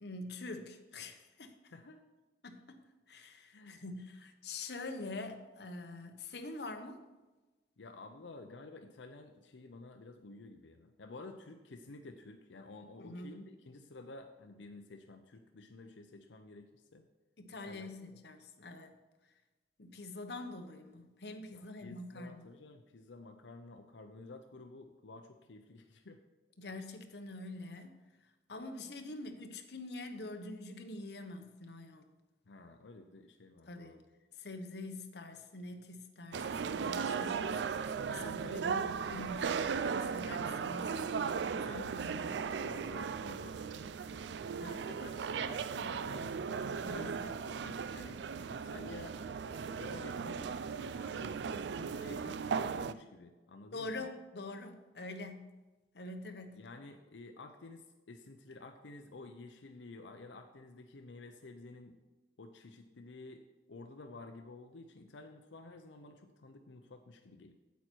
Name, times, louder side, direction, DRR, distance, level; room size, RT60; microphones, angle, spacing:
voice 1, 0.0-1.6 2.4-2.8 3.1-7.0 13.0-13.4 17.4-18.9 19.8-22.5 26.6-28.0 28.5-32.0 33.7-34.0 34.4-42.4 44.6-44.9 46.8-47.2 53.7-55.5 55.9-56.6, left 2 dB, 60° left, 6 dB, 1.0 m, -45 dB
voice 2, 1.6-2.0 3.5-3.8 7.8-17.1 17.7-17.9 21.5-26.2 32.5-34.0 41.5-41.9 42.5-44.2 44.6-46.6 46.9-48.2 48.5-49.2 49.6-50.6 51.0-54.1 56.5-62.0 62.4-67.5, left 2 dB, 90° left, 5 dB, 0.7 m, -52 dB
sound 1, 36.3-52.9, right 6 dB, 70° right, 0.4 m, -37 dB
8.7 x 8.2 x 4.5 m, 1.2 s
head